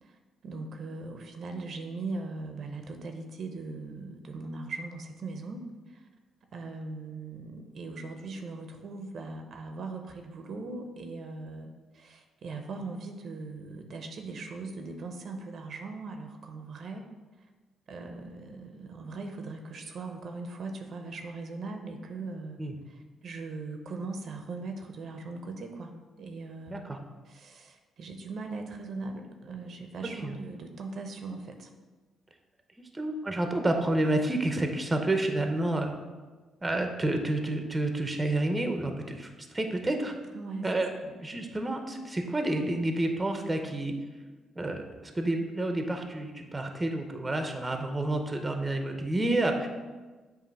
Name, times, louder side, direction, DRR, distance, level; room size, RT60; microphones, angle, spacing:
voice 1, 0.0-5.6 5.9-6.1 6.5-17.1 17.9-26.9 27.3-31.7 40.3-41.1, right 3 dB, 60° right, 5 dB, 0.7 m, -40 dB
voice 2, 26.7-27.0 30.2-30.4 32.9-35.9 36.6-40.1 40.6-40.9 41.2-43.9 44.6-49.7, right 1 dB, 20° right, 5 dB, 0.7 m, -29 dB
7.6 x 2.6 x 5.3 m, 1.3 s
cardioid pair, 90°, 0 cm